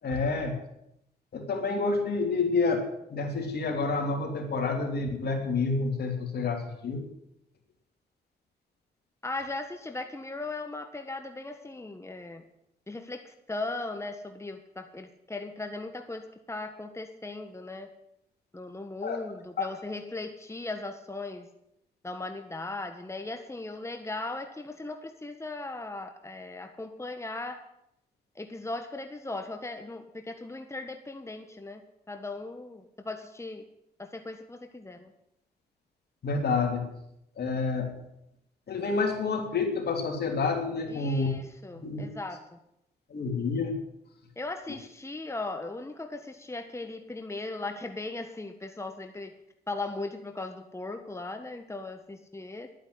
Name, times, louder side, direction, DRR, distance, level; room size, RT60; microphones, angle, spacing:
voice 1, 0.0-0.6 1.3-2.8 3.1-7.0 19.0-19.2 19.6-19.7 36.2-36.9 37.4-38.0 38.7-41.3 41.7-42.1 43.1-43.7, left 4 dB, 70° left, 3 dB, 3.1 m, -28 dB
voice 2, 9.2-12.4 12.9-17.9 18.5-21.5 22.0-27.6 28.3-31.8 32.1-33.6 34.0-35.1 40.9-42.6 44.4-49.3 49.7-52.7, left 2 dB, 15° left, 6 dB, 1.5 m, -38 dB
11.0 x 9.7 x 8.5 m, 0.80 s
cardioid pair, 60°, 17 cm